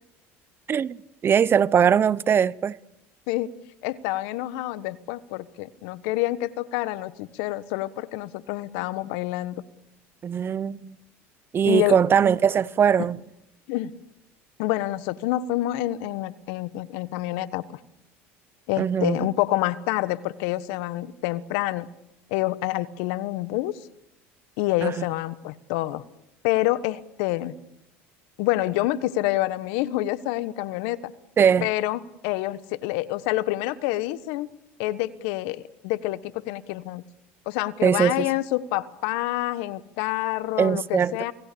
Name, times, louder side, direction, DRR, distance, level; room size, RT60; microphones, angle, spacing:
voice 1, 1.2-2.8 10.2-11.0 11.5-13.2 18.8-19.3 24.8-25.0 31.4-31.7 37.8-38.3 40.6-41.2, right 7 dB, 35° right, 0.8 m, -21 dB
voice 2, 3.8-9.6 11.7-11.9 13.7-13.9 14.6-17.8 18.7-21.9 22.3-23.7 24.6-26.0 26.4-27.6 28.4-31.1 31.6-34.5 34.8-37.0 37.5-41.3, left 16 dB, 75° left, 1.3 m, -27 dB
28.5 x 19.5 x 6.9 m
supercardioid pair, 90°, 7 cm